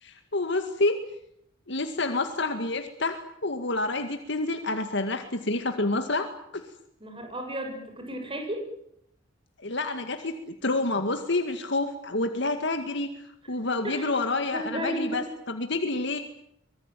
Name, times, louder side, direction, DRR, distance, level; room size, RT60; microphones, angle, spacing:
voice 1, 0.0-1.0 1.7-6.3 6.5-6.6 9.6-13.1 13.5-16.2, left 2 dB, 65° left, 6 dB, 2.2 m, -28 dB
voice 2, 7.0-8.7 13.8-14.1 14.5-15.3, right 1 dB, 30° right, 4 dB, 6.7 m, -33 dB
24.5 x 21.0 x 9.3 m, 0.72 s
head